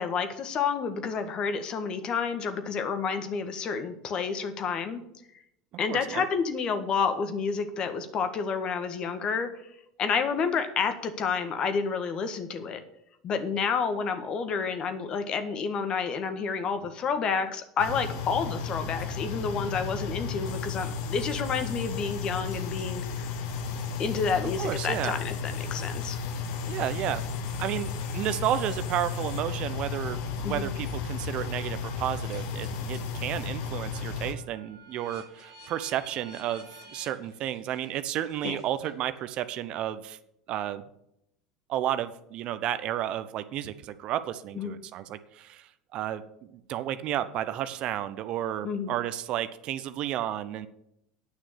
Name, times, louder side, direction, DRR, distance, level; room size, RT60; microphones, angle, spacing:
voice 1, 0.0-5.0 5.8-9.5 10.0-12.8 13.2-23.0 24.0-26.2 30.4-30.7 38.4-38.5 44.5-44.7 48.6-48.9, left 5 dB, 45° left, 9 dB, 1.7 m, -29 dB
voice 2, 5.9-6.2 24.4-25.2 26.7-27.2 27.6-30.2 30.4-40.2 40.5-40.8 41.7-50.7, right 12 dB, 50° right, 13 dB, 0.8 m, -32 dB
sound 1, 17.8-34.3, left 5 dB, 65° left, 1.4 m, -33 dB
sound 2, 22.5-33.2 33.6-39.3, equal, 85° left, 4.1 m, -54 dB
9.5 x 6.2 x 8.6 m, 0.78 s
hypercardioid pair, 75°, 2 cm